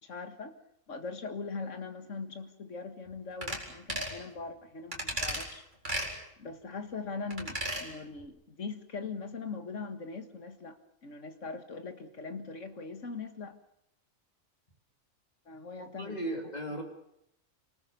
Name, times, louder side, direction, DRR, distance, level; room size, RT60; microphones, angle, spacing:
voice 1, 0.0-0.5 0.9-5.7 6.4-13.6 15.5-16.4, left 4 dB, 65° left, 8 dB, 2.2 m, -41 dB
sound 1, 3.4-3.6 3.9-4.2 4.9-5.4 5.8-6.1 7.3-7.8 8.2-8.3, right 1 dB, 35° right, 4.6 m, -34 dB
voice 2, 15.8-16.8, equal, 30° left, 2 dB, 3.6 m, -37 dB
26.5 x 19.0 x 7.0 m, 0.79 s
omnidirectional pair, 1.4 m